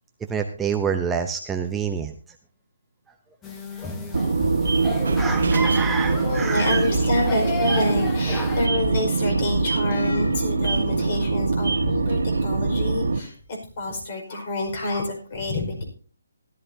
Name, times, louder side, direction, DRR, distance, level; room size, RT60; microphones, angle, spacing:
voice 1, 0.3-2.1 5.2-6.9, right 6 dB, 10° right, 4 dB, 0.7 m, -27 dB
sound 1, 3.4-8.7, left 3 dB, 10° left, 1.2 m, -34 dB
sound 2, 4.1-13.2, right 3 dB, 70° right, 1.3 m, -23 dB
voice 2, 6.2-13.3 13.8-15.8, left 2 dB, 40° left, 3 dB, 5.0 m, -28 dB
sound 3, 6.6-7.1 7.8-8.7 9.9-10.7, left 3 dB, 75° left, 1.9 m, -33 dB
17.0 x 12.5 x 2.8 m, 0.41 s
hypercardioid pair, 155°, 0 cm